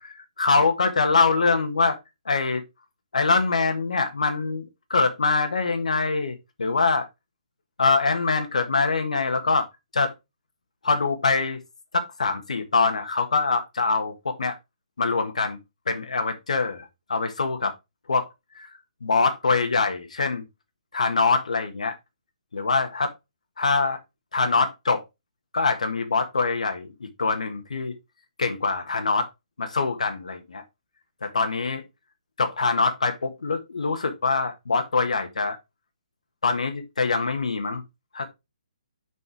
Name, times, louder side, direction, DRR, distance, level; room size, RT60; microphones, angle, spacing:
voice 1, 0.0-2.0 2.2-2.6 3.1-7.1 7.8-9.7 9.9-10.1 10.8-11.6 11.9-14.6 15.0-15.6 15.9-17.7 18.1-18.3 18.5-18.7 19.0-20.4 20.9-22.0 22.5-23.1 23.6-24.0 24.3-25.0 25.5-27.9 28.4-29.3 29.6-30.6 31.2-31.8 32.4-35.6 36.4-37.8 38.1-38.3, left 4 dB, 70° left, 1.4 m, -24 dB
5.7 x 5.3 x 4.7 m
figure-of-eight pair, 135°, 4 cm